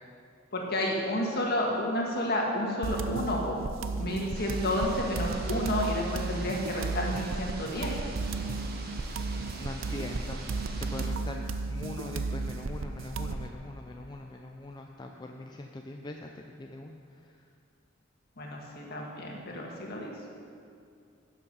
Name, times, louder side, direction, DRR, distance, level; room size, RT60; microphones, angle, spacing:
voice 1, 0.5-3.6 4.0-7.9 18.4-20.1, left 1 dB, 55° left, -1 dB, 1.8 m, -31 dB
sound 1, 2.8-13.5, right 3 dB, 85° right, 0.5 m, -34 dB
sound 2, 4.3-11.1, right 2 dB, 50° right, 1.1 m, -44 dB
voice 2, 9.5-10.4 10.8-16.9, left 2 dB, 20° left, 2 dB, 0.5 m, -42 dB
11.0 x 7.3 x 5.5 m, 2.4 s
head